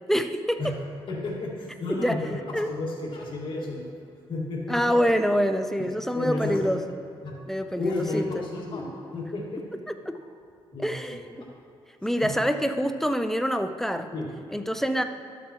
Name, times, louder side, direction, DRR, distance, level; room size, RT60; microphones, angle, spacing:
voice 1, 0.1-0.8 1.9-2.2 2.5-2.7 4.7-7.0 7.5-8.4 9.9-10.2 10.8-11.5 12.0-14.1 14.5-15.0, equal, 5° left, 8 dB, 0.4 m, -26 dB
voice 2, 1.1-3.9 4.3-4.8 5.8-5.9 6.1-6.8 7.2-7.3 7.8-9.6 10.7-11.3 14.1-14.3, left 2 dB, 55° left, -3 dB, 1.8 m, -32 dB
12.5 x 7.0 x 2.9 m, 2.4 s
cardioid pair, 110°, 10 cm